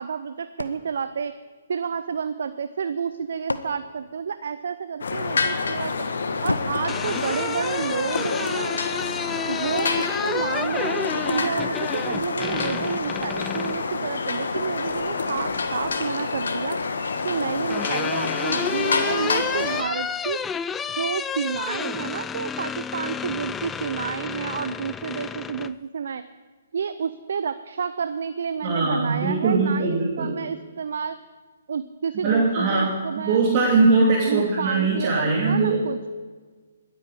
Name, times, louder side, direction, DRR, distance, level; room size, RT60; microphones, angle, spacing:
voice 1, 0.0-1.3 1.7-6.1 6.4-8.8 9.5-16.8 17.2-20.4 20.9-26.2 26.7-31.2 31.7-33.4 34.3-36.1, right 6 dB, 65° right, 12 dB, 0.5 m, -30 dB
sound 1, 0.6-2.1 3.0-5.0 6.5-8.1, left 2 dB, 90° left, 0.8 m, -35 dB
sound 2, 5.0-19.8, left 4 dB, 70° left, 1.3 m, -27 dB
sound 3, 6.9-13.8 15.3-16.0 17.2-25.7, left 7 dB, 10° left, 0.3 m, -31 dB
voice 2, 28.6-30.4 32.2-35.8, right 3 dB, 35° right, -3 dB, 2.4 m, -21 dB
21.5 x 8.3 x 4.9 m, 1.4 s
figure-of-eight pair, 130°, 0 cm